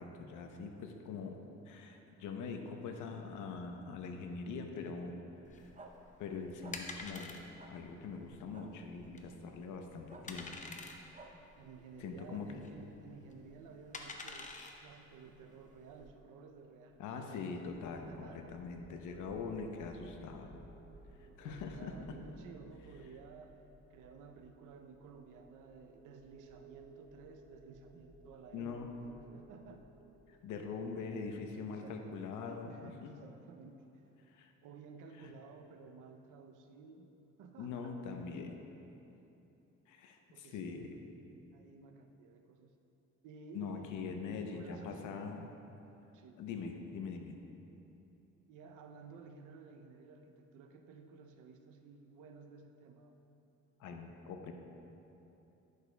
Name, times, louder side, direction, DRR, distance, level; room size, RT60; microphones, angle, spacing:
voice 1, 0.0-1.4 1.7-5.1 5.5-5.7 6.2-7.4 7.7-10.6 12.0-12.6 17.0-20.6 21.2-22.2 28.5-28.9 30.3-33.1 34.3-34.5 35.2-35.3 37.6-38.6 39.9-41.0 43.5-45.5 46.4-47.4 53.8-54.5, left 5 dB, 85° left, 4 dB, 0.7 m, -43 dB
sound 1, 5.5-16.1, left 3 dB, 25° left, 0.6 m, -49 dB
sound 2, 5.8-5.9 6.6-6.8 7.6-7.7 8.5-8.7 10.1-10.2 11.1-11.3, right 4 dB, 25° right, 0.6 m, -52 dB
voice 2, 11.6-17.6 18.1-18.7 21.2-23.6 23.9-29.9 31.6-32.2 32.6-34.1 34.6-37.1 37.4-37.9 40.3-41.0 41.5-42.8 43.2-45.0 46.1-46.4 48.5-53.2, right 5 dB, 90° right, 5 dB, 0.6 m, -54 dB
sound 3, 17.1-32.0, right 2 dB, ahead, 1.2 m, -59 dB
10.5 x 6.4 x 2.2 m, 3.0 s
cardioid pair, 90°, 30 cm